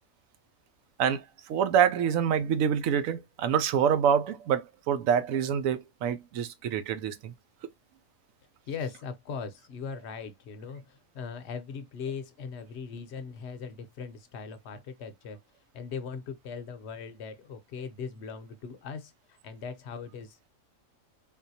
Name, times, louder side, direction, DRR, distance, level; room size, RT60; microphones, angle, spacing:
voice 1, 1.0-7.3, right 8 dB, 80° right, 1.0 m, -26 dB
voice 2, 8.7-15.4 15.7-20.5, left 5 dB, 60° left, 0.9 m, -39 dB
3.7 x 2.5 x 2.7 m
omnidirectional pair, 1.4 m